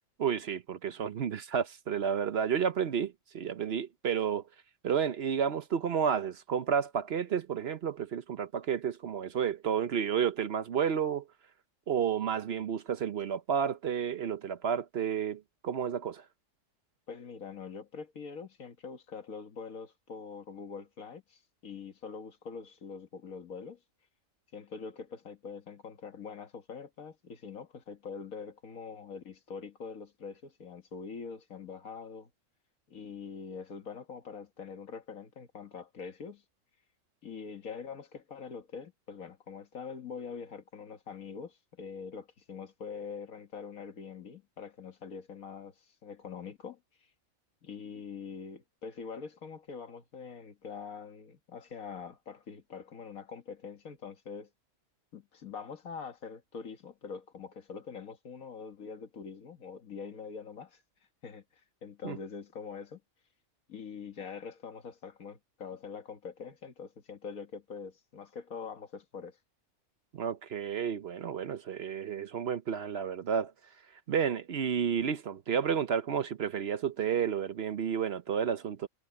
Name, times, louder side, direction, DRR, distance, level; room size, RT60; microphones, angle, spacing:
voice 1, 0.2-4.4 4.8-11.2 11.9-16.2 62.0-62.2 70.1-73.5 74.1-78.9, right 7 dB, 55° right, 0.9 m, -31 dB
voice 2, 17.1-23.8 24.5-32.3 32.9-36.4 37.2-46.8 47.6-54.5 55.1-60.8 61.2-63.0 63.7-69.4, left 6 dB, 90° left, 1.9 m, -44 dB
omnidirectional pair, 1.4 m